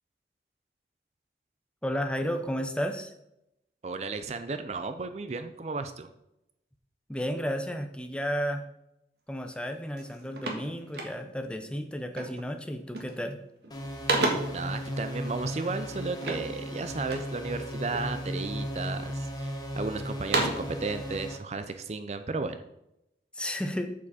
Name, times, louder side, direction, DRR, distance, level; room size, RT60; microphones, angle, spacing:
voice 1, 1.8-3.1 7.1-8.6 9.3-13.4 23.3-23.9, equal, 5° left, 6 dB, 0.6 m, -32 dB
voice 2, 3.8-6.1 14.5-22.6, right 3 dB, 40° right, 9 dB, 0.4 m, -34 dB
sound 1, 9.5-9.7 10.0-11.5 12.1-12.5 12.8-13.3 13.6-14.7 16.2-17.4 17.9-18.5 19.0-19.7 20.1-20.8, right 2 dB, 65° right, 1.6 m, -32 dB
sound 2, 13.7-21.4, equal, 25° left, 1.0 m, -36 dB
7.4 x 6.9 x 4.2 m, 0.84 s
head